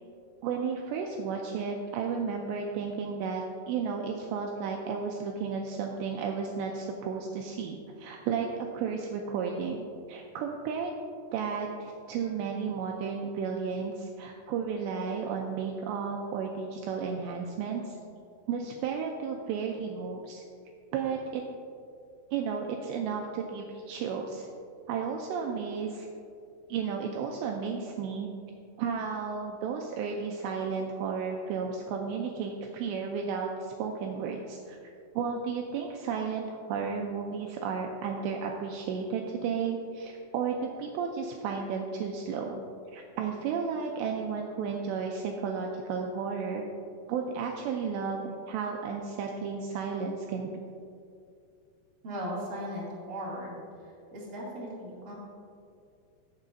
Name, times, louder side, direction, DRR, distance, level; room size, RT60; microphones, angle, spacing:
voice 1, 0.4-8.5 8.7-10.9 11.3-18.0 18.5-20.4 20.9-21.4 22.3-24.5 24.9-26.1 26.7-28.3 28.8-34.8 35.2-42.6 42.9-46.6 47.1-50.5, right 6 dB, 90° right, 1 dB, 2.5 m, -33 dB
voice 2, 52.0-53.6 53.8-55.1, equal, 30° right, -7 dB, 1.4 m, -38 dB
17.0 x 7.2 x 2.6 m, 2.4 s
omnidirectional pair, 5.6 m